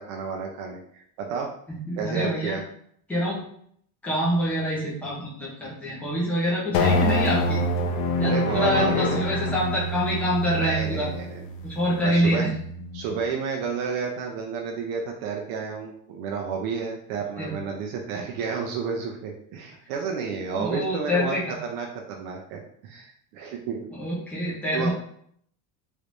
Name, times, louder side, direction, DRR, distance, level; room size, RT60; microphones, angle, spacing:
voice 1, 0.0-1.6 2.0-2.6 8.2-9.3 10.5-11.5 12.0-12.4 12.9-21.4 21.6-23.9 24.7-24.9, right 6 dB, 60° right, 1 dB, 0.6 m, -31 dB
voice 2, 1.7-2.6 3.1-3.4 4.0-7.6 8.2-11.1 11.6-12.5 17.4-17.5 20.6-21.5 23.9-24.9, equal, 5° left, -6 dB, 0.6 m, -26 dB
sound 1, 6.7-13.2, left 2 dB, 60° left, 0.5 m, -26 dB
3.2 x 3.2 x 2.5 m, 0.65 s
cardioid pair, 180°, 42 cm